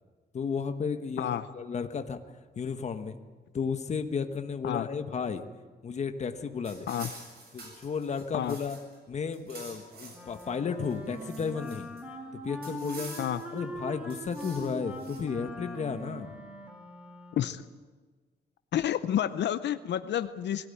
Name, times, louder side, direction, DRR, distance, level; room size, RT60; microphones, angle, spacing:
voice 1, 0.3-2.2 2.6-3.2 3.5-5.4 5.8-6.9 7.5-8.8 9.1-11.9 12.4-13.2 13.5-16.3, left 6 dB, 40° left, 7 dB, 1.3 m, -33 dB
sound 1, 6.6-9.0 9.2-10.5 10.8-12.0 12.6-13.6 14.1-15.2, right 3 dB, 65° right, 7.2 m, -47 dB
Wind instrument woodwind instrument, 10.1-17.6, right 1 dB, 5° right, 2.9 m, -42 dB
voice 2, 17.3-17.6 18.7-20.7, left 10 dB, 85° left, 12 dB, 0.7 m, -30 dB
21.0 x 17.0 x 9.9 m, 1.4 s
wide cardioid pair, 175°, 18 cm